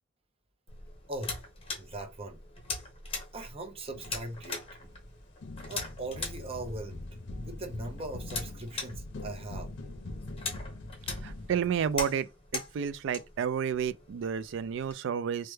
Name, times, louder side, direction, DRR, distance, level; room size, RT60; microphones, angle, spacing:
sound 1, 0.7-14.9, left 4 dB, 30° left, 0.9 m, -42 dB
voice 1, 1.1-1.4 1.8-2.4 3.3-4.6 5.7-9.7, right 2 dB, 30° right, 0.6 m, -40 dB
sound 2, 3.9-5.0 5.4-12.2, left 2 dB, 60° left, 0.6 m, -43 dB
voice 2, 11.2-15.5, right 7 dB, 65° right, 0.3 m, -31 dB
3.2 x 2.2 x 3.1 m
head